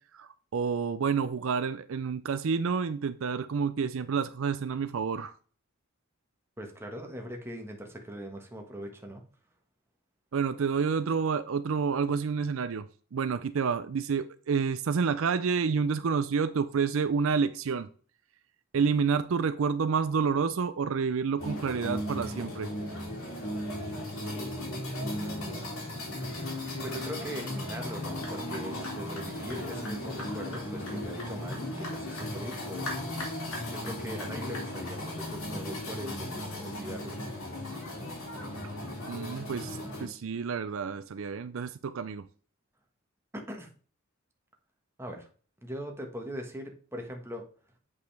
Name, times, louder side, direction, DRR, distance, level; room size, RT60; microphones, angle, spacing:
voice 1, 0.1-5.3 10.3-12.9 13.1-17.9 18.7-22.7 39.1-42.3, right 5 dB, 70° right, 0.5 m, -29 dB
voice 2, 6.6-9.2 25.1-25.7 26.8-32.9 33.7-37.2 43.3-43.7 45.0-45.3 45.6-47.4, equal, 10° right, 1.4 m, -41 dB
sound 1, 21.4-40.1, left 1 dB, 85° left, 3.0 m, -36 dB
8.0 x 5.4 x 3.3 m
head